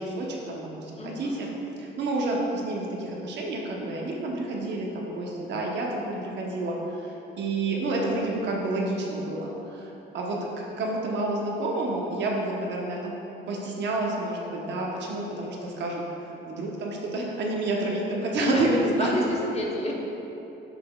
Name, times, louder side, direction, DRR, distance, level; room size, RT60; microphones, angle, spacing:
voice 1, 0.0-1.5 1.8-13.1 13.5-16.0 16.4-19.3, right 2 dB, 65° right, -2 dB, 0.9 m, -29 dB
voice 2, 1.0-1.5 18.4-19.9, left 1 dB, 30° left, -1 dB, 0.8 m, -29 dB
6.7 x 6.1 x 2.3 m, 3.0 s
cardioid pair, 140°, 20 cm